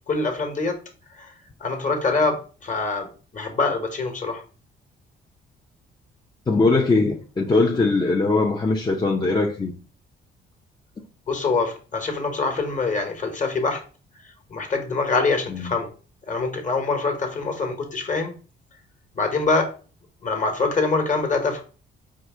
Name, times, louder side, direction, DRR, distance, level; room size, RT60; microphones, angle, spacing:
voice 1, 0.1-0.7 1.1-1.3 1.6-3.1 3.3-4.4 11.3-13.8 14.2-15.9 16.3-18.3 19.1-19.7 20.2-21.6, left 3 dB, 40° left, 1.3 m, -24 dB
voice 2, 6.5-9.7 15.5-15.7, left 3 dB, 20° left, 0.6 m, -21 dB
4.8 x 2.6 x 3.7 m
cardioid pair, 90°, 20 cm